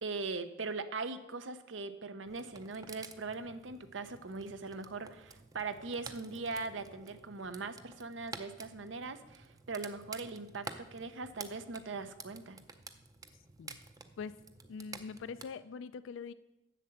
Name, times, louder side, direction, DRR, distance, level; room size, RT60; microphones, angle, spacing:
voice 1, 0.0-12.6, right 3 dB, 85° right, 10 dB, 0.8 m, -40 dB
sound 1, 2.3-15.5, right 4 dB, 20° right, 0.5 m, -51 dB
voice 2, 14.7-16.3, left 5 dB, 85° left, 15 dB, 0.4 m, -43 dB
7.6 x 6.7 x 7.7 m, 0.95 s
head